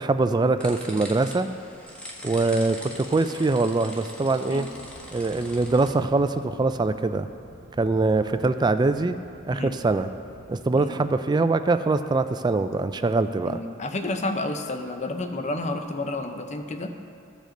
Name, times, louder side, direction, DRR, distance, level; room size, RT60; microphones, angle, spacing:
voice 1, 0.0-1.5 2.2-4.7 5.1-7.3 7.8-9.2 9.5-10.1 10.5-13.6, right 3 dB, 20° right, 10 dB, 0.3 m, -23 dB
sound 1, 0.6-5.9, equal, 5° left, 1.1 m, -41 dB
sound 2, 4.7-10.7, right 1 dB, 55° right, 0.8 m, -49 dB
voice 2, 13.5-16.9, left 2 dB, 35° left, 6 dB, 0.7 m, -30 dB
15.5 x 5.2 x 3.8 m, 2.4 s
head